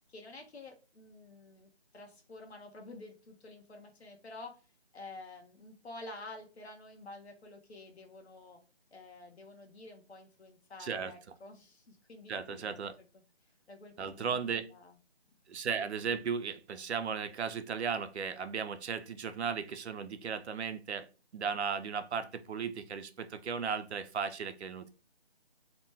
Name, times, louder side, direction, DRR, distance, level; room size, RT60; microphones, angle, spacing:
voice 1, 0.1-4.6 4.9-8.6 8.9-12.9 13.1-13.2 13.7-15.0, left 2 dB, 75° left, 3 dB, 0.9 m, -50 dB
voice 2, 10.8-11.1 12.3-13.0 14.0-14.7 15.5-21.1 21.3-24.9, right 6 dB, 85° right, 10 dB, 0.5 m, -36 dB
2.9 x 2.2 x 3.3 m, 0.34 s
figure-of-eight pair, 170°, 33 cm